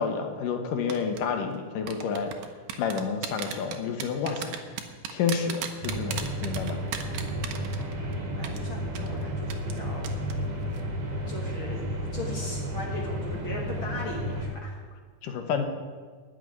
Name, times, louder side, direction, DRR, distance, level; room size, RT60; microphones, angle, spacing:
voice 1, 0.0-2.3 2.8-4.6 5.1-6.8 15.2-15.6, left 6 dB, 80° left, 5 dB, 2.8 m, -29 dB
sound 1, 0.9-1.2 1.9-8.1 8.4-8.6 9.0-9.1 9.5-9.8 10.0-10.3 10.6-10.8, right 9 dB, 80° right, 2.6 m, -35 dB
sound 2, 5.8-14.5, equal, 50° right, 2.9 m, -32 dB
voice 2, 7.8-10.6 11.3-11.8 12.1-14.7, left 2 dB, 45° left, -1 dB, 2.0 m, -39 dB
13.0 x 6.6 x 9.8 m, 1.6 s
omnidirectional pair, 3.7 m